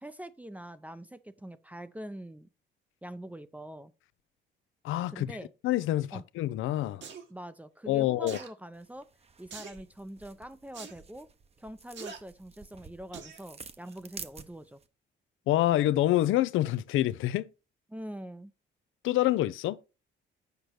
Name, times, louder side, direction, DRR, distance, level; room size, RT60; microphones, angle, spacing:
voice 1, 0.0-2.5 3.0-3.9 5.1-5.5 6.1-6.2 7.3-9.1 9.4-11.3 11.6-14.8 17.9-18.5, equal, 5° right, 0.5 m, -44 dB
voice 2, 4.8-5.4 5.6-7.0 7.9-8.4 15.5-17.5 19.0-19.8, left 14 dB, 85° left, 0.5 m, -27 dB
sound 1, 7.0-7.2 8.3-8.5 9.5-9.8 10.7-10.9 11.9-12.2 13.1-13.4 13.9-14.0, right 5 dB, 65° right, 1.7 m, -43 dB
sound 2, 8.7-14.9, right 5 dB, 30° right, 0.8 m, -50 dB
8.0 x 5.1 x 4.5 m
cardioid pair, 90°, 20 cm